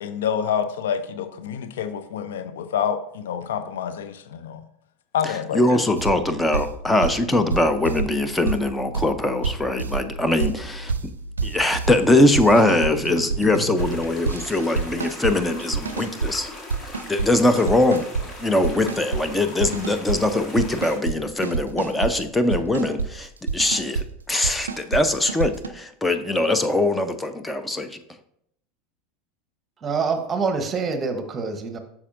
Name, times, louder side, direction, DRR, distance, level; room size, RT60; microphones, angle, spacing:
voice 1, 0.0-4.6 5.1-5.8, left 8 dB, 70° left, 10 dB, 0.5 m, -27 dB
voice 2, 5.5-10.9 11.4-16.5 17.1-18.0 18.4-23.3 23.5-27.9, left 1 dB, 10° left, 9 dB, 0.6 m, -22 dB
sound 1, 6.0-15.3 15.6-16.3 16.7-17.3 17.6-18.3 18.6-19.2 19.6-20.2 20.6-21.2 21.4-22.1 22.5-23.1 23.4-24.1 24.4-25.0 25.3-25.7, right 4 dB, 85° right, 0.5 m, -28 dB
sound 2, 13.8-21.0, left 2 dB, 30° left, 1.5 m, -40 dB
voice 3, 29.8-31.8, right 5 dB, 25° right, 7 dB, 1.0 m, -25 dB
8.4 x 6.0 x 2.6 m, 0.73 s
figure-of-eight pair, 80°, 0 cm